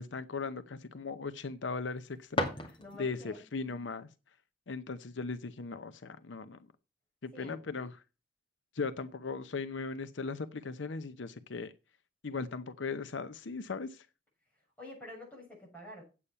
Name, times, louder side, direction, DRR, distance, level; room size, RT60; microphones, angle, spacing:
voice 1, 0.0-2.5 3.0-4.1 4.7-6.6 7.2-7.9 8.7-11.7 12.2-14.1, left 4 dB, 80° left, 0.7 m, -38 dB
sound 1, 1.8-3.3, left 1 dB, 30° left, 2.3 m, -36 dB
voice 2, 2.8-3.4 7.3-7.6 14.8-16.0, left 2 dB, 10° left, 7.0 m, -48 dB
8.7 x 8.5 x 5.5 m
head